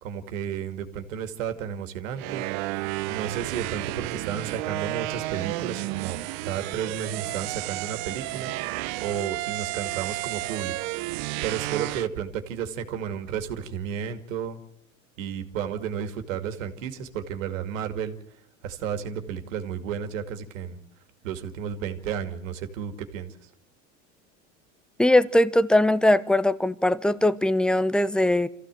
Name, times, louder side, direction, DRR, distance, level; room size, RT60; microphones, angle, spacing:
voice 1, 0.0-2.5 3.1-8.5 9.0-10.7 11.4-14.6 15.2-18.2 18.6-20.8 21.2-23.4, right 8 dB, 80° right, 7 dB, 2.4 m, -32 dB
sound 1, 2.2-12.1, right 19 dB, 60° right, 0.9 m, -32 dB
voice 2, 25.0-28.5, left 1 dB, ahead, 17 dB, 0.8 m, -20 dB
26.0 x 15.0 x 7.7 m, 0.75 s
supercardioid pair, 100°, 38 cm